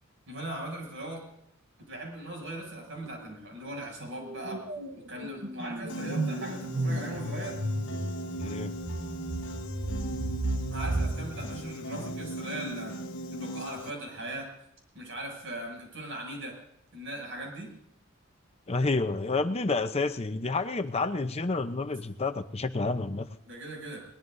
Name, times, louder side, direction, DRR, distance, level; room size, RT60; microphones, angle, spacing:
voice 1, 0.3-1.2 1.9-4.7 5.1-7.6 10.7-13.0 13.3-14.5 14.9-16.6 16.9-17.7 23.5-24.0, right 1 dB, 60° right, 1 dB, 7.1 m, -39 dB
sound 1, 3.1-3.4 3.7-12.4, right 1 dB, 45° right, 1.3 m, -34 dB
Piano, 5.9-13.9, equal, 60° left, 1.2 m, -38 dB
voice 2, 8.4-8.7 18.7-23.3, left 3 dB, 30° left, 9 dB, 0.7 m, -29 dB
22.5 x 19.5 x 2.7 m, 0.75 s
head